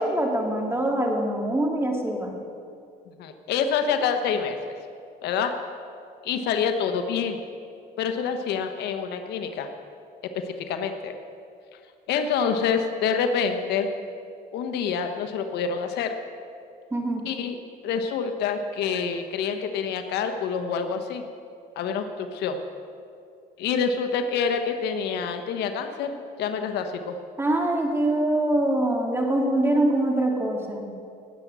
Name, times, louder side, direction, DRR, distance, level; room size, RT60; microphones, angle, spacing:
voice 1, 0.0-2.4 16.9-17.2 27.4-30.9, right 1 dB, 15° right, 1 dB, 2.3 m, -24 dB
voice 2, 3.2-4.7 5.2-5.5 6.2-7.4 8.0-9.7 10.5-11.1 12.1-13.9 14.5-16.2 17.3-17.6 17.8-21.2 21.8-22.6 23.6-27.2, left 6 dB, 80° left, 7 dB, 1.1 m, -27 dB
18.5 x 8.1 x 6.2 m, 2.4 s
cardioid pair, 110°, 17 cm